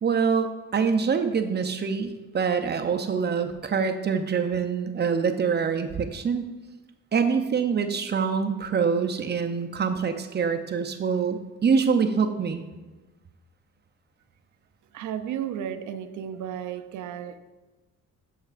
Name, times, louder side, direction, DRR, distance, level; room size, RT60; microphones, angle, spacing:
voice 1, 0.0-6.4 7.1-12.6, right 6 dB, 35° right, 6 dB, 0.6 m, -25 dB
voice 2, 14.9-17.4, right 9 dB, 80° right, 10 dB, 0.6 m, -33 dB
8.8 x 6.5 x 2.5 m, 1.2 s
cardioid pair, 90°, 30 cm